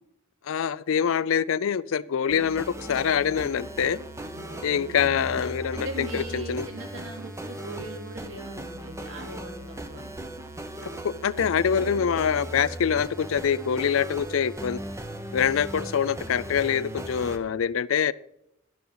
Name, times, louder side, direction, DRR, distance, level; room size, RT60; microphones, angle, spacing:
voice 1, 0.5-4.0 4.6-6.7 11.0-14.8 15.3-18.1, left 7 dB, 70° left, 19 dB, 0.4 m, -25 dB
sound 1, 2.3-17.4, right 1 dB, 15° right, 0.9 m, -38 dB
voice 2, 4.2-5.2 5.7-10.0, right 1 dB, 60° right, 2 dB, 3.0 m, -40 dB
12.5 x 11.5 x 3.9 m, 0.79 s
head